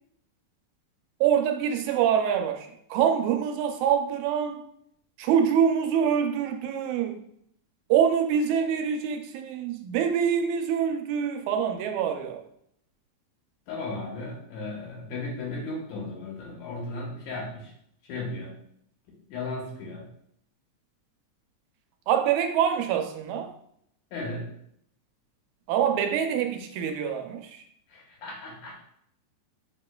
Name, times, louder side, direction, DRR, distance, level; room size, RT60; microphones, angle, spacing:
voice 1, 1.2-4.6 5.2-7.2 7.9-12.4 22.1-23.5 25.7-27.6, right 8 dB, 85° right, 1.9 m, -25 dB
voice 2, 13.7-17.7 18.1-18.6 19.1-20.1 24.1-24.5 27.9-28.8, left 2 dB, 80° left, 2.5 m, -35 dB
6.9 x 3.0 x 2.2 m
omnidirectional pair, 3.3 m